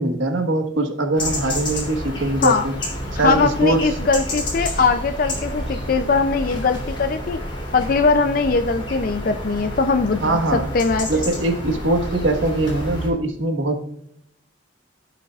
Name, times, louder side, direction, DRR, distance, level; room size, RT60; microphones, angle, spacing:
voice 1, 0.0-2.7 3.2-3.8 10.2-10.7 11.1-13.9, right 2 dB, 85° right, 4 dB, 1.4 m, -22 dB
sound 1, 1.2-13.1, left 1 dB, 25° left, 3.0 m, -29 dB
voice 2, 3.2-7.4 7.7-11.1, left 4 dB, 45° left, 7 dB, 0.4 m, -20 dB
15.5 x 5.7 x 2.4 m, 0.73 s
head